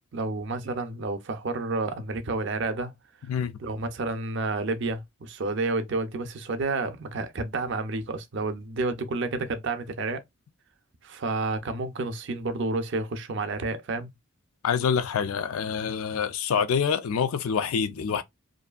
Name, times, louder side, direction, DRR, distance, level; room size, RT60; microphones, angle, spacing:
voice 1, 0.1-2.9 3.6-10.2 11.0-14.1, right 3 dB, 55° right, 0.5 m, -30 dB
voice 2, 3.3-3.6 14.6-18.2, left 7 dB, 80° left, 0.4 m, -26 dB
2.6 x 2.4 x 2.3 m
head